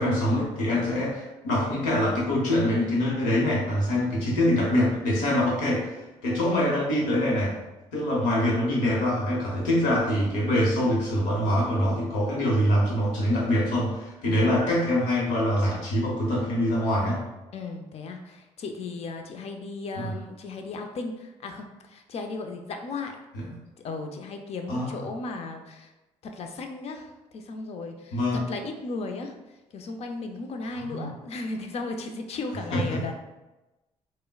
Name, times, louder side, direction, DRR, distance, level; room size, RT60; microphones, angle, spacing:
voice 1, 0.0-7.5 7.9-17.2 19.9-20.1 23.4-23.5 24.7-25.0 28.1-28.4 30.7-31.0 32.7-33.1, left 1 dB, 90° left, -3 dB, 0.9 m, -24 dB
voice 2, 17.5-23.2 23.8-25.9 26.2-29.4 29.7-33.1, left 3 dB, 50° left, 5 dB, 0.5 m, -36 dB
3.7 x 2.1 x 2.2 m, 1.0 s
supercardioid pair, 65°, 13 cm